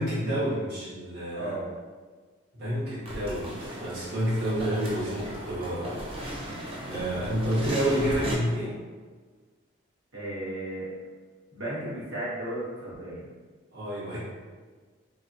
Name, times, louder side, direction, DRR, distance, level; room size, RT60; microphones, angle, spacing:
voice 1, 0.0-1.6 2.5-6.5 6.8-8.8 13.7-14.2, equal, 55° right, -11 dB, 0.7 m, -29 dB
voice 2, 1.3-1.7 10.1-10.9 11.5-13.3, right 1 dB, 75° right, -8 dB, 1.0 m, -34 dB
sound 1, 3.1-8.3, equal, 30° right, 0.4 m, -36 dB
3.1 x 2.1 x 2.5 m, 1.5 s
head